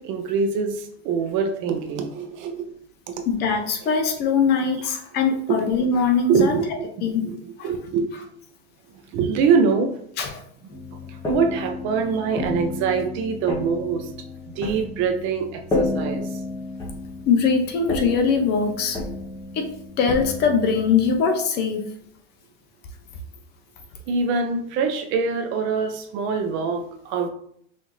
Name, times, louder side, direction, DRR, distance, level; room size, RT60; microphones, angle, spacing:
voice 1, 0.0-2.7 3.1-3.2 5.5-5.6 6.3-6.7 7.0-8.1 9.1-9.9 11.1-14.1 14.6-16.2 24.1-27.3, right 5 dB, 40° right, 6 dB, 0.6 m, -24 dB
voice 2, 3.3-6.5 7.0-7.3 7.6-7.7 10.2-10.4 17.3-19.0 19.5-19.7 20.0-21.8, left 5 dB, 35° left, 5 dB, 0.6 m, -21 dB
sound 1, 10.7-21.1, left 2 dB, 10° left, 0.9 m, -31 dB
5.7 x 2.6 x 3.0 m, 0.66 s
supercardioid pair, 150°, 31 cm